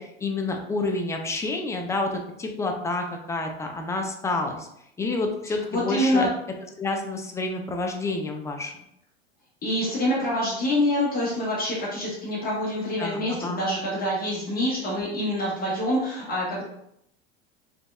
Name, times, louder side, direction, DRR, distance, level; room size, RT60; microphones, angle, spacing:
voice 1, 0.0-2.1 2.4-4.7 5.0-6.3 6.8-8.7 13.0-13.6, left 3 dB, 10° left, 2 dB, 0.3 m, -29 dB
voice 2, 5.7-6.3 9.6-16.6, left 1 dB, 30° left, -6 dB, 0.9 m, -26 dB
3.1 x 2.6 x 2.3 m, 0.77 s
hypercardioid pair, 85°, 32 cm